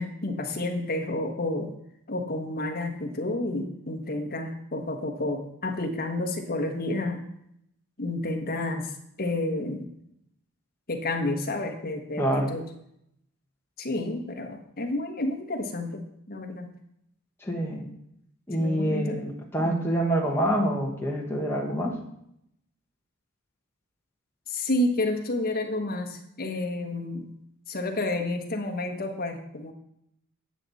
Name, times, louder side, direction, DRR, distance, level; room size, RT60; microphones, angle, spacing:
voice 1, 0.0-1.7 2.1-7.2 8.0-9.9 10.9-12.6 13.8-16.7 18.6-19.2 19.6-19.9 24.5-27.3 27.7-29.7, left 2 dB, 45° left, 3 dB, 1.3 m, -30 dB
voice 2, 12.2-12.5 17.4-17.8 18.5-22.0, right 1 dB, 10° left, -2 dB, 1.5 m, -26 dB
11.0 x 7.6 x 4.1 m, 0.76 s
head